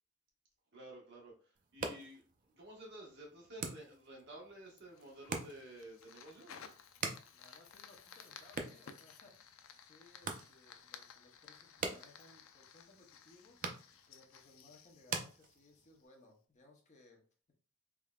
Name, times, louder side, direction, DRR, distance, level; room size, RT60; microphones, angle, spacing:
voice 1, 0.7-6.6, right 1 dB, 60° right, -2 dB, 1.3 m, -52 dB
sound 1, 1.5-16.0, right 4 dB, 40° right, 0.5 m, -47 dB
Fire, 4.8-16.1, left 7 dB, 90° left, 0.4 m, -57 dB
voice 2, 7.3-17.5, left 2 dB, 35° left, 2 dB, 0.8 m, -64 dB
3.6 x 3.2 x 2.3 m, 0.39 s
head